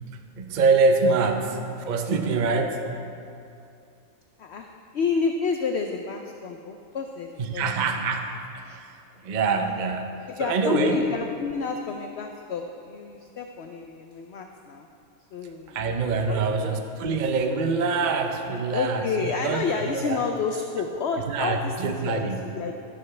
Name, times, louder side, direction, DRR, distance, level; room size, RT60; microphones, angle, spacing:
voice 1, 0.4-2.9 7.4-8.3 8.5-8.9 9.2-11.0 15.7-20.2 21.3-22.4, right 4 dB, 45° right, 5 dB, 0.6 m, -25 dB
voice 2, 4.9-7.6 10.3-14.9 15.3-15.8 16.2-16.7 18.7-22.7, left 5 dB, 60° left, 4 dB, 0.7 m, -29 dB
13.0 x 11.5 x 3.3 m, 2.5 s
omnidirectional pair, 1.6 m